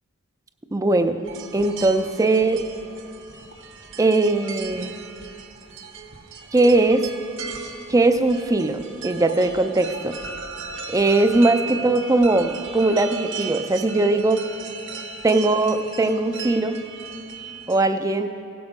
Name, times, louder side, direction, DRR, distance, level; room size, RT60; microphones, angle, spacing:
voice 1, 0.7-2.7 4.0-4.9 6.5-7.1 7.9-10.2 10.9-14.4 15.2-16.8 17.7-18.3, right 2 dB, 15° right, 8 dB, 0.4 m, -20 dB
sound 1, 1.2-17.8, right 5 dB, 55° right, 1.0 m, -37 dB
17.0 x 7.0 x 5.2 m, 2.6 s
head